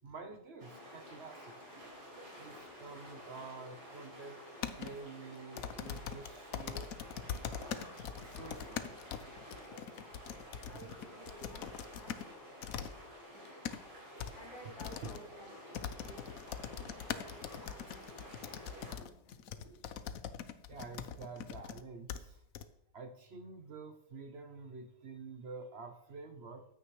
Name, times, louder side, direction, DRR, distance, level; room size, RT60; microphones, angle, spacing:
voice 1, 0.0-1.6 2.4-6.9 8.2-8.9 14.6-14.7 15.0-15.1 20.7-22.4 22.9-26.6, right 4 dB, 55° right, 7 dB, 0.7 m, -48 dB
river rushing rapids close smooth liquidy detail, 0.6-18.9, equal, 90° right, 5.1 m, -51 dB
voice 2, 1.8-2.9 9.4-9.6 10.2-12.3 14.3-16.3 16.8-19.9, equal, 35° left, -5 dB, 2.9 m, -56 dB
sound 1, 4.6-4.9 5.6-12.3 12.6-12.9 13.4-13.8 14.2-14.3 14.8-15.2 15.7-21.8 22.1-22.2 22.5-22.6, left 8 dB, 65° left, 0.9 m, -42 dB
14.5 x 9.5 x 3.1 m, 0.78 s
omnidirectional pair, 1.9 m